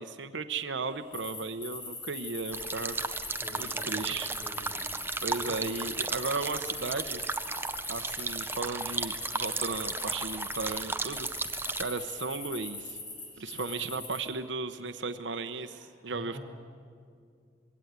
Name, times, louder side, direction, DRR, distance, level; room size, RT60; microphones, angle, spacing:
voice 1, 0.0-3.0 3.6-4.3 5.2-7.2 7.9-11.3 11.8-13.0 13.4-16.4, right 3 dB, 80° right, 10 dB, 0.8 m, -35 dB
sound 1, 1.1-10.8 11.1-14.2, left 3 dB, 80° left, 7.1 m, -41 dB
sound 2, 2.5-11.8, right 3 dB, 10° right, 0.6 m, -35 dB
voice 2, 3.4-4.7 5.5-5.6 13.3-13.8 15.7-16.4, equal, 5° left, -2 dB, 5.3 m, -48 dB
22.0 x 17.0 x 9.4 m, 2.3 s
head